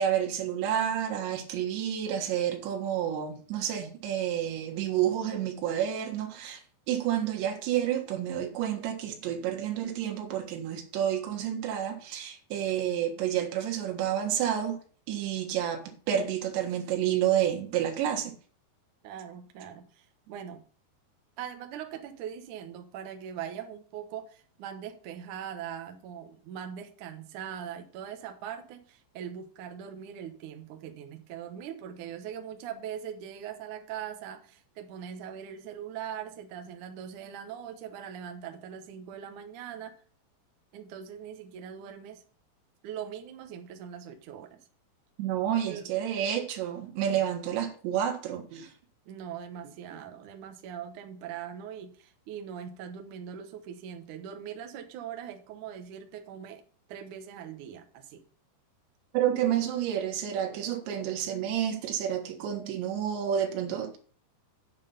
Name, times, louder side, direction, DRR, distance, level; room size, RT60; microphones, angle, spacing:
voice 1, 0.0-6.6 6.9-14.8 15.1-18.4 45.2-48.7 59.1-64.0, right 10 dB, 85° right, 3.8 m, -29 dB
voice 2, 19.0-20.6 21.4-40.0 40.7-42.2 42.8-44.6 45.7-45.9 49.1-56.6 56.9-58.2, right 9 dB, 65° right, 2.0 m, -41 dB
8.9 x 7.3 x 5.5 m
omnidirectional pair, 5.0 m